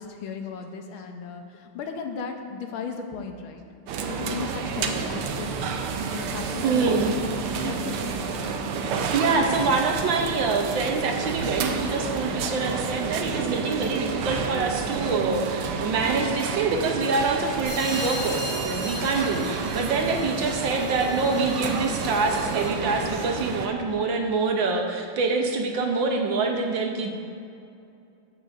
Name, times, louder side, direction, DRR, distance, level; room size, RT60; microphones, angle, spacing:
voice 1, 0.0-3.6 4.1-8.3, left 5 dB, 80° left, 4 dB, 1.6 m, -36 dB
sound 1, 3.9-23.7, right 5 dB, 85° right, 1.6 m, -30 dB
voice 2, 6.6-7.1 9.1-27.1, right 3 dB, 65° right, 2 dB, 1.5 m, -25 dB
sound 2, 17.6-22.9, left 1 dB, 30° left, 2.4 m, -38 dB
15.0 x 8.5 x 2.5 m, 2.5 s
omnidirectional pair, 2.4 m